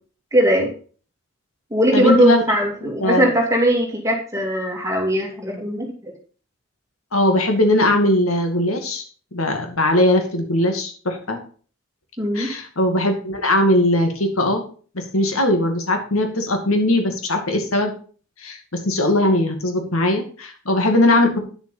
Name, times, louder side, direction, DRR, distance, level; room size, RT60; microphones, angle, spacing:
voice 1, 0.3-0.7 1.7-6.1 12.2-12.5, right 1 dB, 15° right, 0 dB, 2.6 m, -20 dB
voice 2, 1.9-2.4 2.8-3.3 7.1-9.0 9.3-11.4 12.3-14.6 14.9-17.9 18.4-21.4, left 1 dB, 90° left, 5 dB, 2.4 m, -19 dB
10.0 x 7.1 x 5.6 m, 0.41 s
head